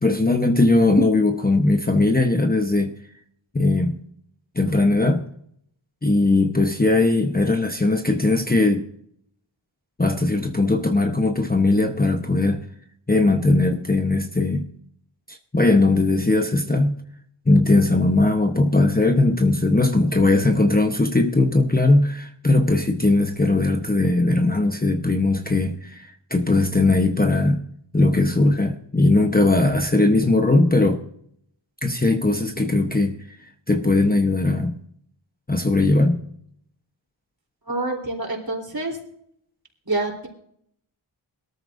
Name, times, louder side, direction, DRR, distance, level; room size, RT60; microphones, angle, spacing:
voice 1, 0.0-2.9 3.5-4.0 4.5-5.2 6.0-8.9 10.0-12.6 13.1-14.7 15.3-17.0 17.5-27.6 27.9-31.0 31.8-34.8 35.5-36.2, left 2 dB, 20° left, 5 dB, 1.0 m, -19 dB
voice 2, 37.7-39.0 39.9-40.3, right 2 dB, 45° right, 0 dB, 3.7 m, -27 dB
21.5 x 13.5 x 2.6 m, 0.69 s
wide cardioid pair, 80°, 48 cm